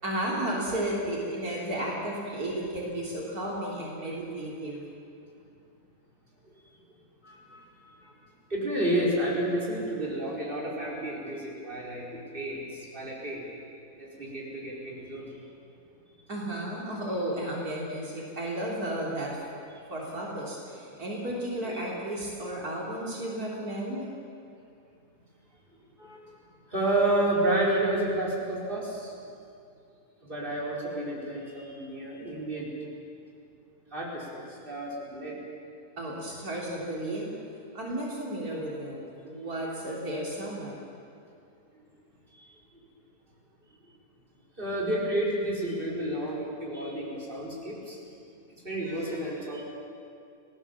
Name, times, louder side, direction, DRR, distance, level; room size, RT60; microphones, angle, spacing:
voice 1, 0.0-4.8 16.3-19.4 19.9-24.1 36.0-37.4 37.7-40.8, right 1 dB, 70° right, -4 dB, 3.9 m, -33 dB
voice 2, 7.2-7.7 8.0-8.2 8.5-13.5 14.0-15.4 21.7-21.8 26.0-26.2 26.7-29.1 30.2-32.7 33.9-35.4 41.7-41.9 42.4-42.5 44.6-48.2 48.5-49.6, right 1 dB, 35° right, -4 dB, 5.2 m, -30 dB
30.0 x 18.5 x 7.3 m, 2.5 s
omnidirectional pair, 1.6 m